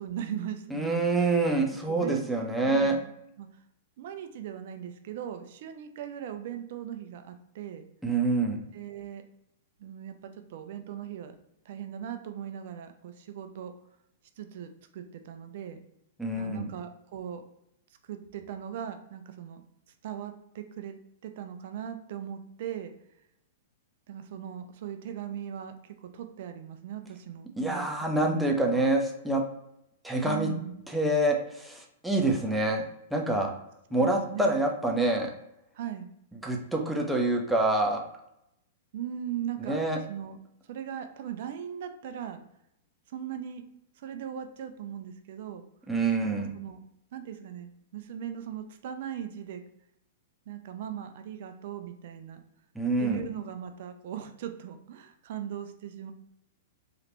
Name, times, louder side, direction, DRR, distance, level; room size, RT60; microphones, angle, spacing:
voice 1, 0.0-1.4 1.9-2.3 2.6-3.1 3.4-3.5 4.0-7.9 8.7-9.2 9.8-11.4 11.7-13.7 14.4-15.8 16.3-17.4 18.0-19.6 20.0-21.0 21.2-22.9 24.1-27.9 28.1-28.4 28.7-28.9 30.2-30.8 33.9-34.6 35.7-36.1 38.9-39.8 40.1-40.4 40.7-42.4 43.1-43.6 44.0-45.7 46.2-46.8 47.1-49.6 50.5-52.4 53.0-56.1, right 9 dB, 55° right, 8 dB, 0.4 m, -39 dB
voice 2, 0.7-3.0 8.0-8.6 16.2-16.7 27.6-29.4 30.0-30.5 30.9-33.5 33.9-35.3 36.4-38.0 39.7-40.0 45.9-46.5 52.8-53.2, right 2 dB, 5° right, 0 dB, 0.5 m, -26 dB
3.0 x 2.4 x 3.0 m, 0.81 s
figure-of-eight pair, 105°, 0 cm